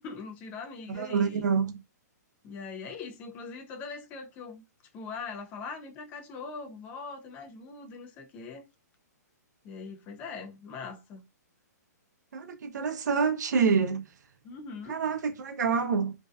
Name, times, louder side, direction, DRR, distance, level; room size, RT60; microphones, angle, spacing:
voice 1, 0.0-1.5 2.4-4.6 4.9-8.6 9.6-11.2 14.4-15.0, left 4 dB, 15° left, 0.3 m, -41 dB
voice 2, 0.9-1.8 12.3-14.0 14.9-16.1, right 5 dB, 75° right, 0.5 m, -27 dB
2.5 x 2.2 x 2.3 m
hypercardioid pair, 160°, 10 cm